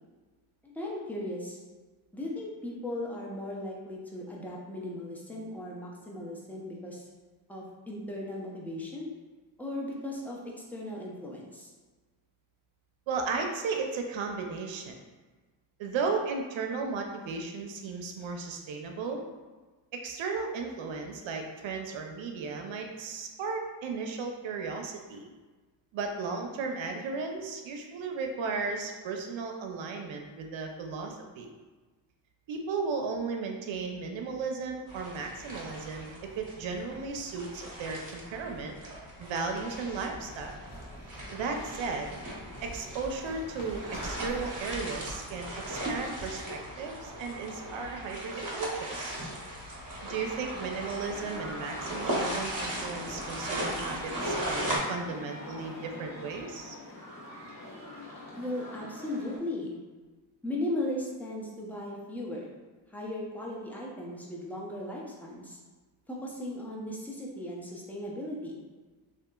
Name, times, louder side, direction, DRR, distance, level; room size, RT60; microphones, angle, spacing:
voice 1, 0.6-1.6 2.1-7.1 7.5-9.1 9.6-10.4 10.7-11.7 58.4-59.8 60.4-62.5 62.9-65.6 66.1-68.6, left 1 dB, 5° left, -4 dB, 0.5 m, -37 dB
voice 2, 13.1-15.0 15.8-19.2 19.9-25.3 25.9-31.5 32.5-38.7 39.2-40.6 41.3-42.1 42.6-49.1 50.1-56.8, right 4 dB, 70° right, 3 dB, 0.5 m, -35 dB
sound 1, 34.9-54.8, right 1 dB, 40° right, 0.8 m, -38 dB
sound 2, 39.5-46.6, equal, 65° left, 1.0 m, -45 dB
sound 3, 51.0-59.4, left 1 dB, 35° left, 0.8 m, -45 dB
2.7 x 2.4 x 2.2 m, 1.3 s
cardioid pair, 60°, 48 cm